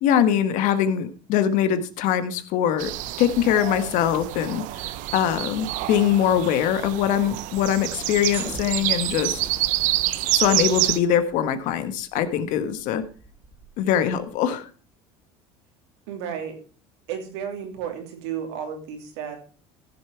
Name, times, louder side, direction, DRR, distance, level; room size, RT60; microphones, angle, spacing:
voice 1, 0.0-2.9 3.2-4.6 5.1-9.4 10.3-13.0 13.8-14.7, left 9 dB, 65° left, 11 dB, 1.3 m, -22 dB
sound 1, 2.8-11.0, right 16 dB, 65° right, 0.7 m, -27 dB
sound 2, 8.3-14.3, right 2 dB, 15° right, 2.3 m, -45 dB
voice 2, 16.1-16.6 17.1-19.4, right 8 dB, 85° right, 4 dB, 2.8 m, -32 dB
14.5 x 7.2 x 4.5 m, 0.39 s
supercardioid pair, 105°, 14 cm